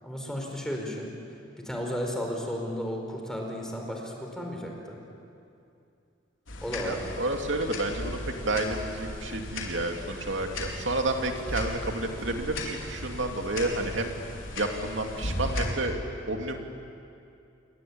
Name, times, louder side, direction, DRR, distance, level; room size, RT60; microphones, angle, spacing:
voice 1, 0.0-1.1 1.6-5.0 6.6-7.0, equal, 5° left, 1 dB, 4.9 m, -33 dB
sound 1, 6.5-15.7, left 2 dB, 85° left, 4.7 m, -36 dB
voice 2, 6.8-14.1 14.6-16.0 16.3-16.6, right 2 dB, 70° right, 3 dB, 2.9 m, -30 dB
29.0 x 23.0 x 8.9 m, 2.6 s
head